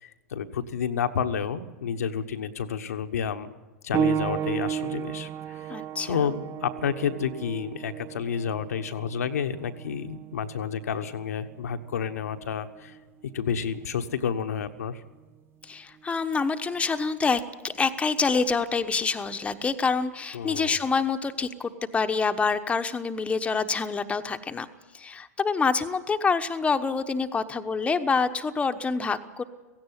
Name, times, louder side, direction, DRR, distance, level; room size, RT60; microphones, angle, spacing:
voice 1, 0.0-3.5 3.8-5.7 6.1-13.0 13.2-15.0 20.3-20.8, left 7 dB, 75° left, 7 dB, 1.2 m, -30 dB
sound 1, 3.9-14.2 15.1-15.2 16.0-16.1, right 8 dB, 25° right, 0.6 m, -34 dB
voice 2, 5.7-6.2 15.6-24.7 24.9-29.4, left 4 dB, 15° left, 8 dB, 1.1 m, -26 dB
16.5 x 16.0 x 9.9 m, 1.2 s
hypercardioid pair, 100°, 9 cm